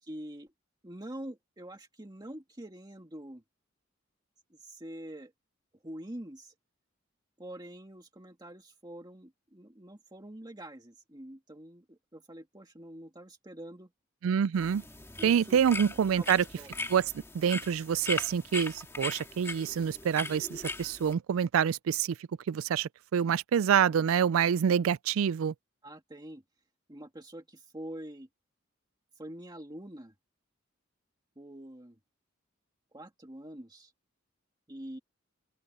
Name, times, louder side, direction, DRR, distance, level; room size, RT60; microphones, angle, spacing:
voice 1, 0.0-0.5 0.8-3.4 4.5-5.3 5.8-6.5 7.4-13.9 15.2-15.6 16.2-16.7 25.8-26.4 26.9-28.3 29.2-30.1 31.4-32.0 32.9-33.9 34.7-35.0, right 1 dB, 20° right, 1.8 m, -45 dB
voice 2, 14.2-14.8 15.2-16.4 16.9-17.0 17.3-22.2 22.5-25.5, right 8 dB, 85° right, 0.4 m, -27 dB
sound 1, 14.6-21.1, left 2 dB, 15° left, 2.0 m, -39 dB
open air
head